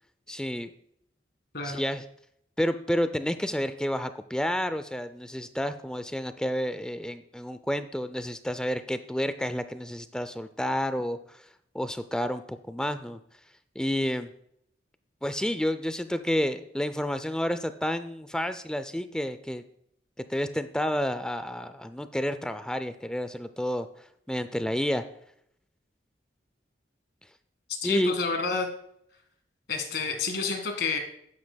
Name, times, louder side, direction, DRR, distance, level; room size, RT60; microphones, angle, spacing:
voice 1, 0.3-0.7 1.6-2.0 2.6-11.4 11.7-13.2 13.8-14.3 15.2-19.6 20.3-23.9 24.3-25.0 27.8-28.1, equal, 5° left, 11 dB, 0.4 m, -30 dB
voice 2, 27.8-28.7 29.7-31.0, left 4 dB, 60° left, 5 dB, 1.9 m, -29 dB
11.5 x 9.5 x 2.3 m, 0.71 s
head